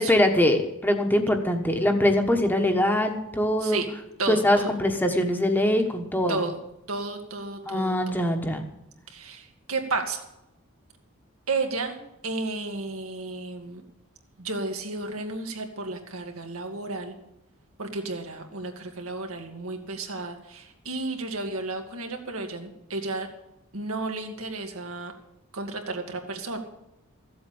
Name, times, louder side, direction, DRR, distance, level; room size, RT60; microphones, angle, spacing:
voice 1, 0.0-3.8 4.3-6.4 7.7-8.7, left 1 dB, 10° left, 4 dB, 1.2 m, -23 dB
voice 2, 4.2-4.7 6.3-6.6 6.9-8.0 9.1-10.2 11.5-12.0 12.2-13.8 14.4-17.1 17.8-23.3 23.7-25.1 25.5-26.6, right 3 dB, 80° right, 4 dB, 2.1 m, -32 dB
15.0 x 7.9 x 8.6 m, 0.87 s
head